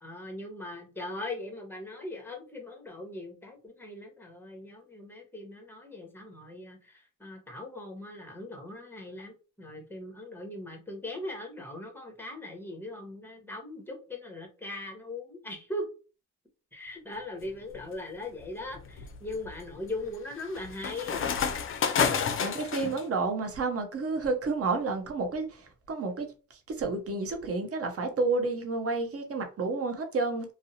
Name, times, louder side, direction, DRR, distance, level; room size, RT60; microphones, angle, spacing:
voice 1, 0.0-15.9 16.7-21.3, left 2 dB, 5° left, 0.9 m, -40 dB
sound 1, 17.5-17.8 18.4-23.0, left 6 dB, 40° left, 0.4 m, -30 dB
voice 2, 22.4-30.5, right 3 dB, 40° right, 0.7 m, -30 dB
2.5 x 2.0 x 2.7 m
cardioid pair, 80°, 35 cm